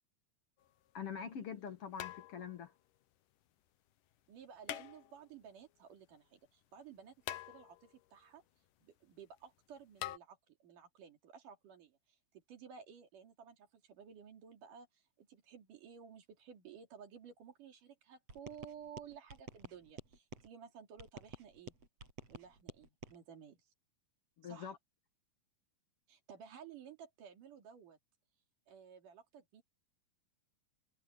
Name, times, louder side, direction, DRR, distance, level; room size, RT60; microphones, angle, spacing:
sound 1, 0.6-0.7 2.0-2.7 4.6-5.4 7.3-8.0 10.0-10.2, left 13 dB, 80° left, 2.6 m, -45 dB
voice 1, 0.9-2.7 24.4-24.8, left 7 dB, 55° left, 1.9 m, -44 dB
voice 2, 4.3-8.4 8.8-12.2 12.5-21.7 22.3-23.6 24.4-24.8 26.1-28.0 28.7-29.6, right 7 dB, 75° right, 4.2 m, -55 dB
sound 2, 18.3-20.5 21.0-23.2, right 3 dB, 50° right, 8.3 m, -51 dB
omnidirectional pair, 3.8 m